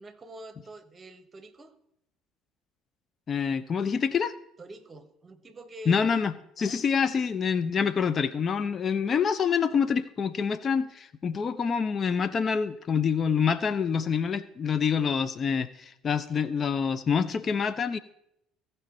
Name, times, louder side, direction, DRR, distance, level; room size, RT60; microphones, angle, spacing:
voice 1, 0.0-1.7 4.6-6.3 6.6-6.8 7.6-7.7, right 2 dB, 30° right, 10 dB, 1.1 m, -46 dB
voice 2, 3.3-4.3 5.9-18.0, left 6 dB, 40° left, 13 dB, 0.5 m, -26 dB
15.5 x 5.4 x 4.2 m, 0.77 s
figure-of-eight pair, 55°, 0 cm